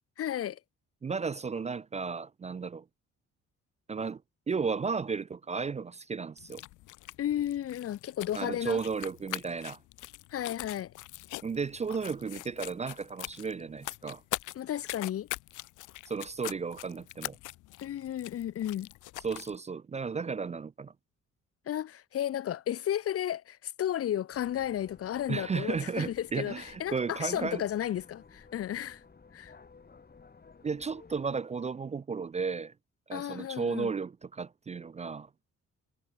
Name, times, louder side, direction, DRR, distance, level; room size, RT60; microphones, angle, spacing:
voice 1, 0.2-0.6 7.2-8.8 10.3-10.9 14.5-15.3 17.8-18.9 21.7-29.0 29.3-29.5 33.1-33.9, left 11 dB, 50° left, 0.6 m, -33 dB
voice 2, 1.0-2.8 3.9-4.2 4.5-6.6 8.3-9.8 11.4-14.2 16.1-17.4 19.2-20.9 25.3-27.6 30.6-32.7 33.1-35.3, right 5 dB, 25° right, 0.4 m, -34 dB
sound 1, 6.4-19.6, left 18 dB, 90° left, 0.8 m, -43 dB
sound 2, 24.3-31.3, left 5 dB, 30° left, 4.4 m, -55 dB
cardioid pair, 90°, 30 cm